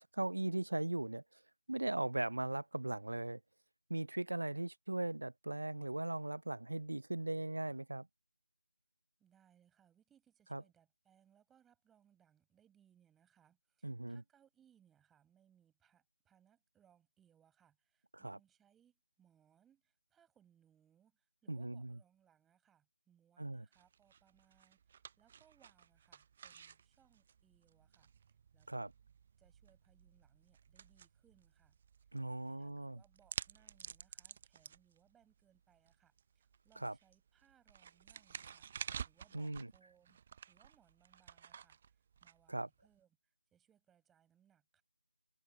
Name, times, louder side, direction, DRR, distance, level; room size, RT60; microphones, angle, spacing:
voice 1, 0.1-1.4 1.7-3.4 3.9-8.1 10.5-10.6 13.8-14.2 18.1-18.4 21.5-22.0 23.4-23.7 28.7-28.9 32.1-33.0 36.8-37.0 39.3-39.7 42.5-42.7, right 2 dB, 70° right, 0.4 m, -38 dB
voice 2, 9.2-28.1 28.5-28.7 29.4-31.8 32.4-40.2 40.5-44.8, right 9 dB, 5° right, 5.5 m, -72 dB
sound 1, 23.7-43.0, right 7 dB, 30° right, 0.6 m, -52 dB
figure-of-eight pair, 160°, 0 cm